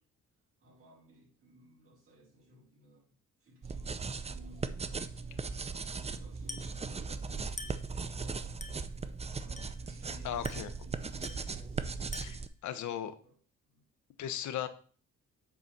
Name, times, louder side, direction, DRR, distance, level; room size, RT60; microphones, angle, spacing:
voice 1, 0.6-8.7 9.3-11.9 12.8-13.4 13.7-13.8, right 2 dB, 45° right, 4.2 m, -58 dB
sound 1, 3.6-12.5, right 4 dB, 20° right, 0.6 m, -38 dB
Glass, 6.5-6.8 7.6-7.9 8.6-8.9 9.6-9.9 10.4-10.8 11.2-11.6 12.1-12.5, left 3 dB, 25° left, 1.5 m, -46 dB
voice 2, 10.2-10.7 12.2-13.1 14.2-14.7, left 10 dB, 70° left, 1.0 m, -37 dB
8.2 x 4.1 x 6.0 m
cardioid pair, 90°, 30 cm